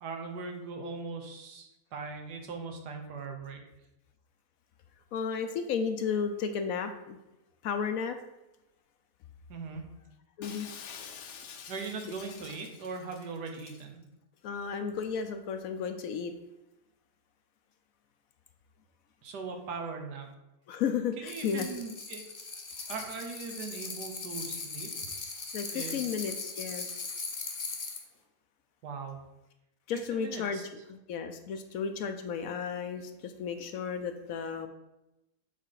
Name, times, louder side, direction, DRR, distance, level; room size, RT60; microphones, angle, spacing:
voice 1, 0.0-3.6 9.5-9.9 11.7-14.0 19.2-20.3 21.2-22.2 22.9-24.9 25.7-26.0 28.8-29.2 30.1-30.6, right 4 dB, 85° right, 4 dB, 1.6 m, -40 dB
voice 2, 5.1-7.2 7.6-8.2 10.4-10.7 14.4-16.3 20.7-21.7 25.5-27.0 29.9-30.6 30.9-34.7, left 6 dB, 65° left, 8 dB, 0.9 m, -33 dB
Shatter, 10.4-13.9, left 7 dB, 85° left, 1.4 m, -47 dB
sound 1, 21.3-28.0, left 4 dB, 40° left, 1.0 m, -39 dB
7.2 x 3.6 x 5.7 m, 0.94 s
omnidirectional pair, 1.7 m